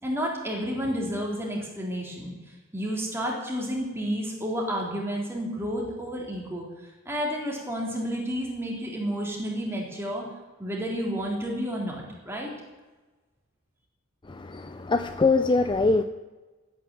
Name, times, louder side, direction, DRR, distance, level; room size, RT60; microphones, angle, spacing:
voice 1, 0.0-2.3 2.7-10.2 10.6-12.5, equal, 10° right, -2 dB, 3.6 m, -31 dB
voice 2, 14.3-16.0, left 3 dB, 25° left, 9 dB, 0.5 m, -23 dB
13.5 x 9.3 x 7.6 m, 1.2 s
head